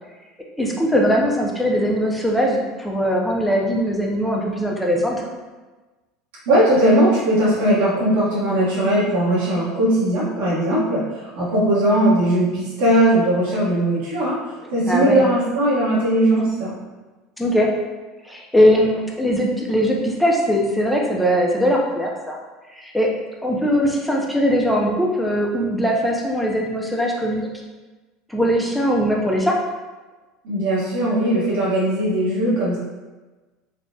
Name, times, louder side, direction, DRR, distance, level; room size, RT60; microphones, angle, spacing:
voice 1, 0.6-5.2 14.9-15.2 17.4-17.7 18.2-22.4 22.7-23.1 23.4-27.5 28.3-29.5, equal, ahead, -2 dB, 0.4 m, -20 dB
voice 2, 6.5-14.4 14.7-16.7 30.4-32.8, right 1 dB, 85° right, -8 dB, 0.9 m, -19 dB
3.5 x 2.0 x 2.6 m, 1.2 s
cardioid pair, 160°, 0 cm